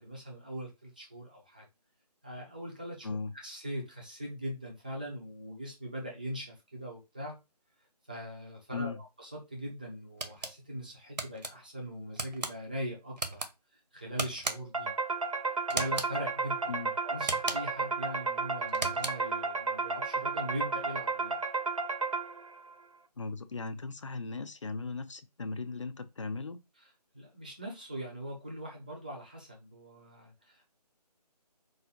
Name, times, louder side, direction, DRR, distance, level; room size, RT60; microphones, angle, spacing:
voice 1, 0.0-1.6 2.2-3.1 3.3-7.4 8.1-13.4 13.9-14.9 15.7-16.7 17.0-21.4 27.1-30.7, equal, 15° right, 0.6 m, -41 dB
voice 2, 3.0-3.3 8.7-9.0 16.7-16.9 23.2-26.6, left 4 dB, 45° left, 0.6 m, -37 dB
sound 1, 10.2-10.5 11.2-11.5 12.2-12.5 13.2-13.5 14.2-14.8 15.7-16.1 17.2-17.8 18.7-19.3, right 3 dB, 80° right, 1.1 m, -36 dB
sound 2, 14.7-22.6, right 4 dB, 55° right, 0.8 m, -33 dB
4.8 x 2.6 x 4.2 m
figure-of-eight pair, 170°, 21 cm